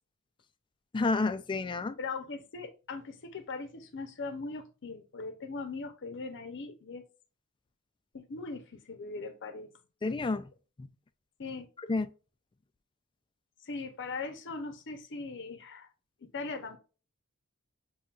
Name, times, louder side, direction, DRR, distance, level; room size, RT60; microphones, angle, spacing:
voice 1, 0.9-2.0 10.0-10.5 10.8-10.9 11.8-12.1, left 3 dB, 20° left, 0.3 m, -30 dB
voice 2, 2.0-7.0 8.1-9.7 11.4-11.7 13.6-15.9 16.3-16.8, left 3 dB, 55° left, 0.7 m, -40 dB
7.3 x 2.7 x 2.4 m
head